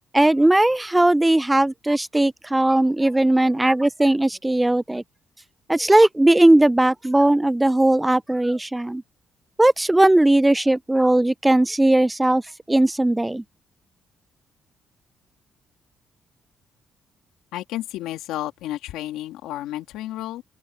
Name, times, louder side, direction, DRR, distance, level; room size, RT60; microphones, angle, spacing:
voice 1, 0.1-5.0 5.7-9.0 9.6-12.4 12.7-13.4, right 1 dB, 10° right, 0.4 m, -18 dB
voice 2, 17.5-20.4, left 14 dB, 90° left, 2.8 m, -31 dB
open air
cardioid pair, 75°, 0 cm